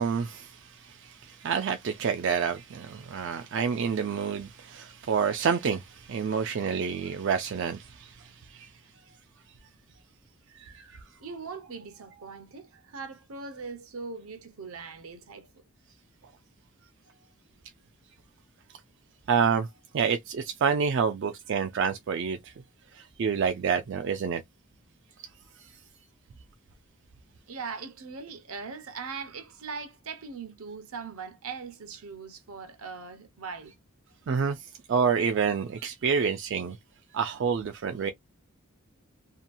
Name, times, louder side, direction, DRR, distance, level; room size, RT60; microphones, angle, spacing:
voice 1, 0.0-8.7 19.3-19.7 19.9-22.5 22.9-24.4 25.6-25.7 34.3-36.8 37.1-38.1, right 6 dB, 55° right, 0.3 m, -28 dB
voice 2, 10.5-15.5 27.5-33.7, right 5 dB, 80° right, 0.8 m, -41 dB
2.8 x 2.3 x 2.5 m
head